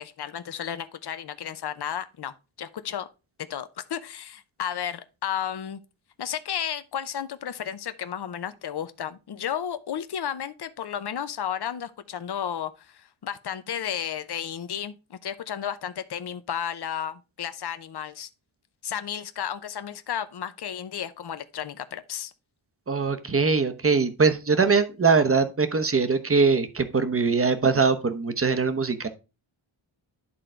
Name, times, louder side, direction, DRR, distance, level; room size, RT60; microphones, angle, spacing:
voice 1, 0.0-3.1 3.5-5.8 6.2-18.3 18.8-22.3, left 9 dB, 55° left, 0.7 m, -33 dB
voice 2, 22.9-29.1, right 4 dB, 30° right, 0.9 m, -22 dB
11.5 x 3.9 x 4.4 m
wide cardioid pair, 145°, 48 cm